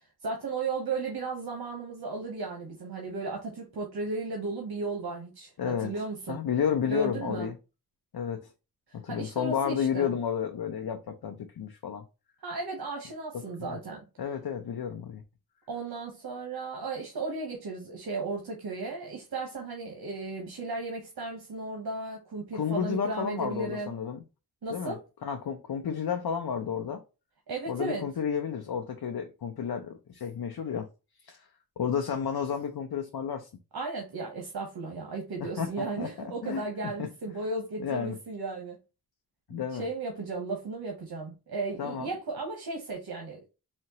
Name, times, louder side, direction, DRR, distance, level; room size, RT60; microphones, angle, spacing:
voice 1, 0.0-6.4 6.9-7.5 8.9-10.1 12.4-14.0 15.7-23.9 24.6-25.0 27.5-28.0 33.7-38.8 39.5-43.5, right 3 dB, 90° right, 1.0 m, -35 dB
voice 2, 5.6-5.9 6.3-7.5 8.1-8.5 8.9-12.0 13.6-13.8 14.2-15.2 22.5-24.2 24.7-27.0 27.7-30.9 31.2-31.5 31.8-33.5 35.4-36.1 36.4-36.6 37.0-37.1 37.8-38.1 39.5-39.9 41.8-42.1, left 7 dB, 85° left, 0.7 m, -31 dB
4.3 x 2.8 x 2.8 m
wide cardioid pair, 70°, 36 cm